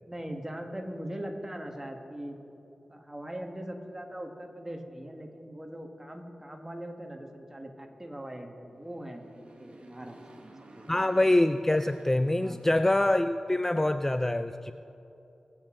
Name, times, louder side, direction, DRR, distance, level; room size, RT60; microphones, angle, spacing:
voice 1, 0.0-2.4 2.9-9.3 9.6-10.8 12.4-12.7, right 1 dB, 20° right, 3 dB, 1.7 m, -41 dB
Motorcycle, 8.7-13.4, right 2 dB, 65° right, 1.5 m, -54 dB
voice 2, 10.9-14.7, left 1 dB, 20° left, 10 dB, 0.4 m, -25 dB
22.5 x 8.2 x 3.8 m, 2.9 s
cardioid pair, 55°, 2 cm